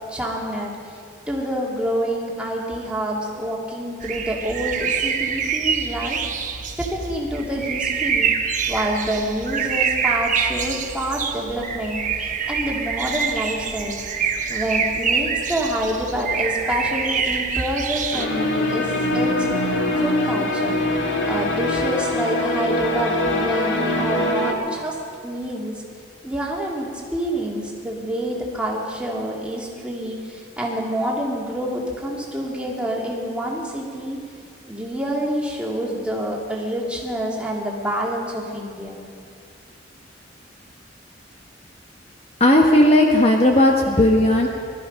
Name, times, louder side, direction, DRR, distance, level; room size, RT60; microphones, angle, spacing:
voice 1, 0.1-1.0 1.3-8.3 8.7-14.1 14.5-19.7 20.0-20.8 21.2-25.0 25.2-25.8 26.2-34.2 34.7-39.0, equal, 5° right, -3 dB, 2.2 m, -27 dB
sound 1, 4.0-18.3, right 6 dB, 40° right, 0.9 m, -25 dB
sound 2, 18.1-24.5, left 1 dB, 70° left, 1.7 m, -23 dB
voice 2, 42.4-44.5, left 1 dB, 30° left, 1 dB, 1.1 m, -15 dB
20.5 x 13.0 x 5.3 m, 2.3 s
head